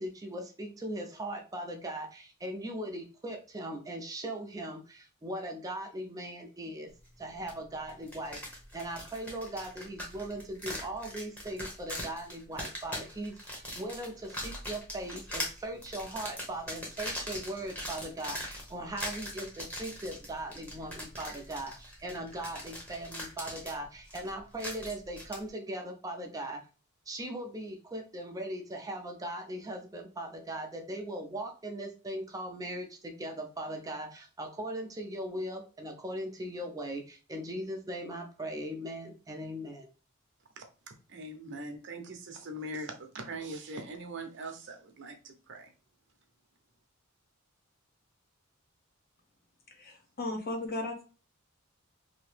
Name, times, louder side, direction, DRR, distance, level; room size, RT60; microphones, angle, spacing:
voice 1, 0.0-6.9 7.2-26.6 27.1-39.9, right 1 dB, 15° right, 3 dB, 0.5 m, -39 dB
sound 1, 7.5-7.6 7.9-25.4, equal, 5° left, 0.9 m, -41 dB
voice 2, 41.1-45.7, right 1 dB, 60° right, 5 dB, 0.7 m, -41 dB
voice 3, 49.7-51.0, left 2 dB, 45° left, 3 dB, 0.8 m, -36 dB
2.9 x 2.7 x 3.2 m, 0.35 s
head